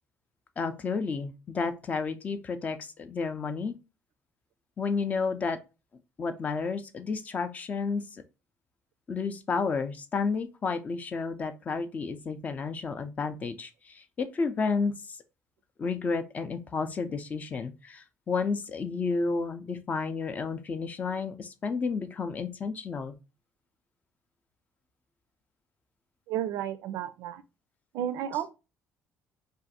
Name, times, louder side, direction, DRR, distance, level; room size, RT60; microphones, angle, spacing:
voice 1, 0.6-3.7 4.8-5.6 6.2-8.2 9.1-15.2 15.8-23.1, left 4 dB, 30° left, 0.4 m, -31 dB
voice 2, 26.3-27.4 27.9-28.5, right 10 dB, 90° right, 0.4 m, -32 dB
2.5 x 2.5 x 4.0 m
cardioid pair, 145°, 5 cm